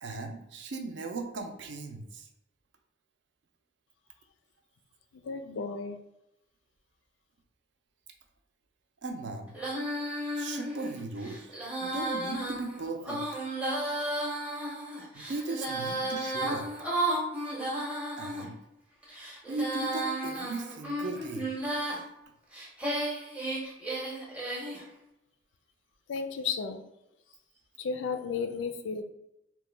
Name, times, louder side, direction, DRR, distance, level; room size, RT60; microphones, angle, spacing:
voice 1, 0.0-2.3 9.0-9.5 10.3-11.5 11.8-13.2 15.1-16.7 18.2-18.6 19.5-21.5, right 3 dB, 70° right, 4 dB, 0.5 m, -37 dB
voice 2, 5.1-6.0 26.1-26.8 27.8-29.0, left 5 dB, 80° left, 8 dB, 0.3 m, -33 dB
Female singing, 9.5-18.4 19.0-22.0 22.5-24.8, right 1 dB, 5° right, 0.6 m, -33 dB
2.9 x 2.1 x 3.2 m, 0.87 s
head